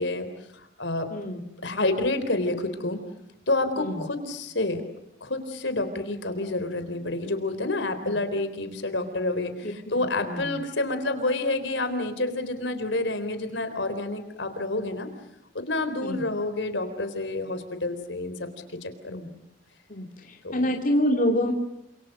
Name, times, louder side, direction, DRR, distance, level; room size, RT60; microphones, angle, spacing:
voice 1, 0.0-1.1 1.6-3.0 3.5-4.8 5.2-15.1 15.5-18.5 18.8-19.2 20.4-20.7, left 2 dB, 70° left, 9 dB, 3.9 m, -29 dB
voice 2, 1.1-1.4 3.8-4.0 8.0-8.2 9.6-10.6 16.0-16.2 19.1-19.3 19.9-21.5, equal, 45° left, 1 dB, 2.7 m, -27 dB
29.0 x 27.0 x 6.5 m, 0.84 s
head